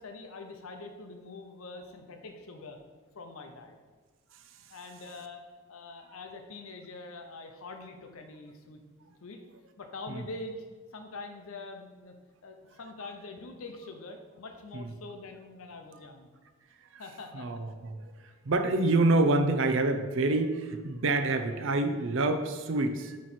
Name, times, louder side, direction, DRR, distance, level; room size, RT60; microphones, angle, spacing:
voice 1, 0.0-2.8 3.1-3.8 4.7-8.8 9.2-9.4 9.8-12.1 12.4-16.3 17.0-17.5, left 3 dB, 75° left, 5 dB, 0.7 m, -44 dB
voice 2, 17.3-18.0 18.4-23.2, right 2 dB, 60° right, 8 dB, 0.5 m, -27 dB
7.9 x 3.2 x 4.3 m, 1.3 s
head